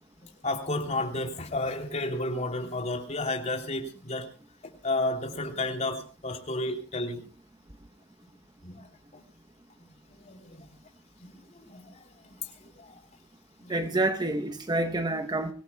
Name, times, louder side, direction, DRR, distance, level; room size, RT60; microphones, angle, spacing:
voice 1, 0.2-4.3 4.8-7.2 8.6-8.9 9.1-9.2 10.1-10.7 11.2-13.0 13.6-13.8, left 2 dB, 35° left, 3.2 m, -32 dB
voice 2, 13.7-15.5, right 2 dB, 20° right, 0.9 m, -28 dB
25.0 x 17.5 x 2.2 m
head